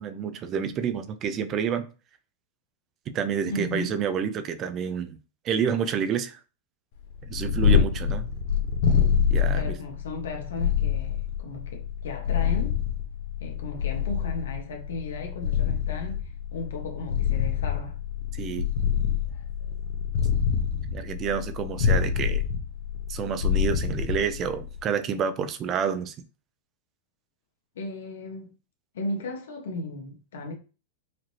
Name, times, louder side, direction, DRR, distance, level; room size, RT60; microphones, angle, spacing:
voice 1, 0.0-1.9 3.1-5.2 5.4-6.4 7.3-8.3 9.3-9.8 18.3-18.7 20.9-22.4 23.1-26.1, right 7 dB, 35° right, 0.5 m, -29 dB
voice 2, 3.5-4.0 9.5-12.8 13.4-18.0 27.7-28.5 28.9-30.5, left 2 dB, 85° left, 1.3 m, -35 dB
Purr, 7.1-24.8, left 8 dB, 60° left, 1.0 m, -26 dB
4.9 x 3.0 x 2.9 m
hypercardioid pair, 130°, 0 cm